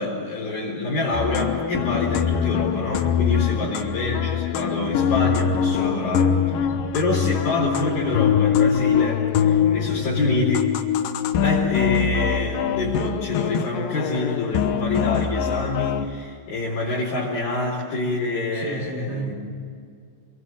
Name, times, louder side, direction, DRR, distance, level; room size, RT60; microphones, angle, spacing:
voice 1, 0.0-6.3 6.9-10.7 11.3-19.3, left 2 dB, 55° left, -4 dB, 5.7 m, -26 dB
sound 1, 1.1-16.1, left 8 dB, 70° left, 2.3 m, -23 dB
voice 2, 3.3-3.8 6.5-6.9 18.5-19.3, right 3 dB, 50° right, 0 dB, 1.2 m, -32 dB
28.5 x 23.0 x 7.6 m, 2.2 s
omnidirectional pair, 5.2 m